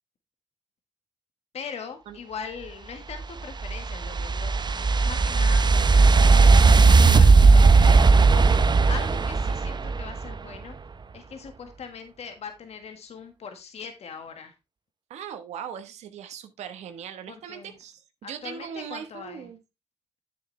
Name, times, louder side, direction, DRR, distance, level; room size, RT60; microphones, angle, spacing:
voice 1, 1.5-4.5 4.9-6.1 6.4-10.7 11.1-14.5 17.3-17.8 18.2-19.5, left 6 dB, 70° left, 1.7 m, -41 dB
sound 1, 3.1-10.4, right 4 dB, 40° right, 0.7 m, -17 dB
voice 2, 15.1-19.6, right 8 dB, 85° right, 1.2 m, -39 dB
10.0 x 7.2 x 3.2 m
supercardioid pair, 40°, 11 cm